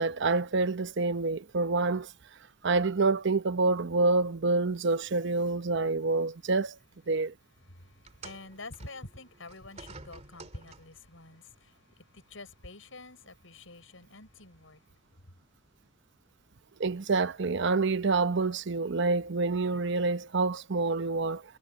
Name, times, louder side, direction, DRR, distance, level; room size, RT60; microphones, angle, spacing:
voice 1, 0.0-2.1 2.6-6.8 7.1-7.3 16.8-21.4, right 3 dB, 65° right, 0.8 m, -27 dB
voice 2, 7.6-14.9 15.2-15.3, left 2 dB, 85° left, 6.4 m, -48 dB
sound 1, 8.0-11.1 12.1-12.3 13.1-13.2, right 3 dB, 35° right, 2.2 m, -50 dB
head